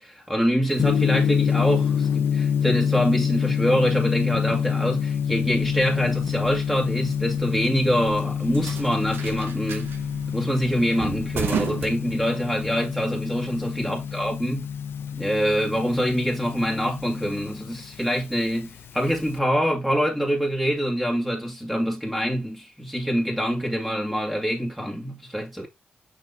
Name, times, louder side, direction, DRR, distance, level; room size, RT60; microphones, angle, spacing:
voice 1, 0.0-9.9 10.3-14.6 15.1-25.7, equal, 5° right, 2.0 m, -25 dB
Gong, 0.7-19.4, left 7 dB, 85° left, 0.9 m, -27 dB
sound 1, 5.4-12.7, right 6 dB, 80° right, 1.8 m, -35 dB
6.2 x 5.8 x 2.7 m
cardioid pair, 85°, 4 cm